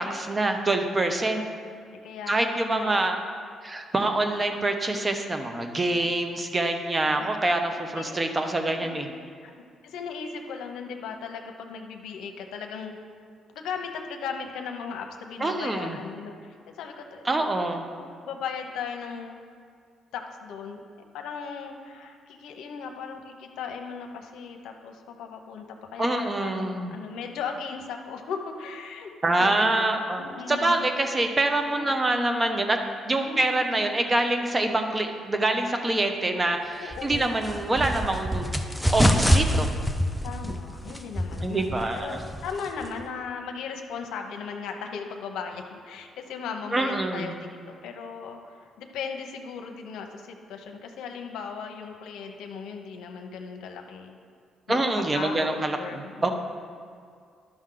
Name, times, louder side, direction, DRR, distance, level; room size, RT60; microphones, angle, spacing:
voice 1, 0.0-1.4 2.3-3.2 3.6-9.1 15.4-16.0 17.2-17.8 26.0-26.9 29.2-32.8 33.0-38.6 38.9-39.7 41.4-42.2 46.7-47.3 54.7-56.3, right 2 dB, 25° right, 5 dB, 0.9 m, -25 dB
voice 2, 2.0-3.0 7.1-7.2 7.9-8.2 8.7-9.0 9.4-9.5 9.8-13.0 13.5-17.5 18.0-19.4 20.1-20.8 21.1-31.0 31.7-32.4 33.2-33.9 36.8-37.4 40.2-54.2 54.7-54.8 55.1-56.3, left 6 dB, 85° left, 3 dB, 0.8 m, -37 dB
sound 1, 36.9-43.1, equal, ahead, 0.6 m, -26 dB
12.0 x 6.1 x 3.9 m, 2.2 s
cardioid pair, 90°, 0 cm